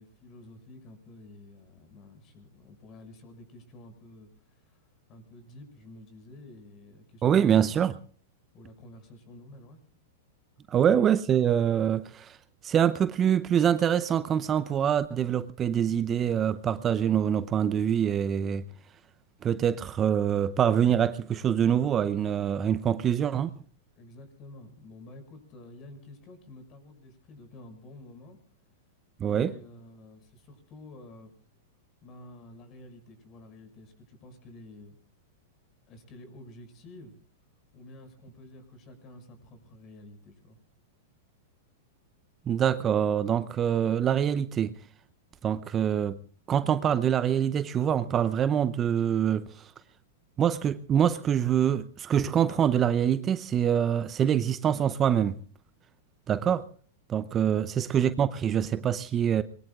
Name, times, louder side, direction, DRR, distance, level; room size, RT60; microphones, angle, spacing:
voice 1, 0.0-7.7 8.5-9.8 24.0-28.4 29.2-31.3 32.0-34.9 35.9-37.2 37.7-40.6 57.5-57.6, left 1 dB, 35° left, 6.2 m, -50 dB
voice 2, 7.2-8.0 10.7-12.4 12.6-18.6 19.4-23.5 29.2-29.5 42.5-44.7 45.4-46.2 46.5-49.7 50.4-55.4 56.3-56.7 57.1-59.4, right 9 dB, 25° right, 0.7 m, -25 dB
26.0 x 22.0 x 2.4 m
hypercardioid pair, 110°, 0 cm